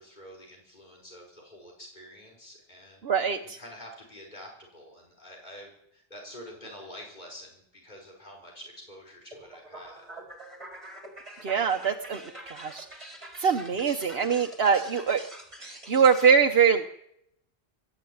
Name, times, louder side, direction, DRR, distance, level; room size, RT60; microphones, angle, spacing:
voice 1, 0.0-10.1, equal, 45° left, 0 dB, 5.7 m, -47 dB
voice 2, 3.0-3.6 11.4-12.2 12.5-12.9 13.4-15.2 15.6-16.9, right 6 dB, 70° right, 5 dB, 1.3 m, -23 dB
sound 1, 9.3-16.3, right 1 dB, 30° right, 4.9 m, -45 dB
25.0 x 13.0 x 9.5 m, 0.78 s
omnidirectional pair, 1.1 m